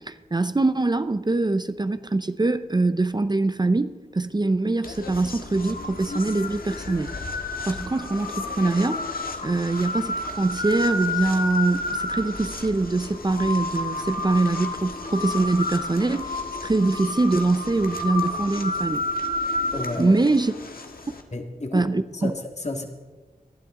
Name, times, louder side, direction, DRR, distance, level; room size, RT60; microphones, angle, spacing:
voice 1, 0.0-7.1 7.6-9.0 9.4-19.0 20.0-20.5 21.7-22.3, right 2 dB, 30° right, 0.5 m, -23 dB
sound 1, 4.8-21.2, left 2 dB, 80° left, 1.4 m, -31 dB
voice 2, 19.7-20.2 21.3-22.9, left 2 dB, 50° left, 1.8 m, -32 dB
19.5 x 12.0 x 3.7 m
wide cardioid pair, 65°, 15 cm